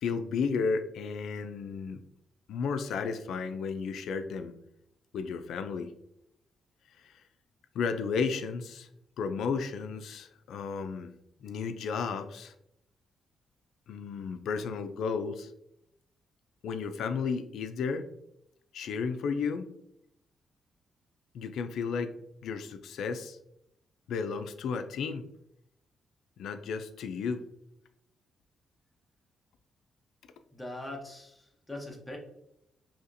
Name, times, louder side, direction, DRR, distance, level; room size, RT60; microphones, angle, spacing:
voice 1, 0.0-2.0 2.5-4.5 5.1-5.9 7.0-7.2 7.7-8.9 9.2-11.1 11.4-12.5 13.9-15.5 16.6-18.1 18.7-19.7 21.3-22.1 22.4-23.4 24.1-25.2 26.4-27.4, left 5 dB, 80° left, 9 dB, 0.3 m, -33 dB
voice 2, 30.5-32.2, left 1 dB, 10° left, 0 dB, 0.7 m, -41 dB
4.1 x 2.8 x 2.6 m, 0.78 s
wide cardioid pair, 160°, 0 cm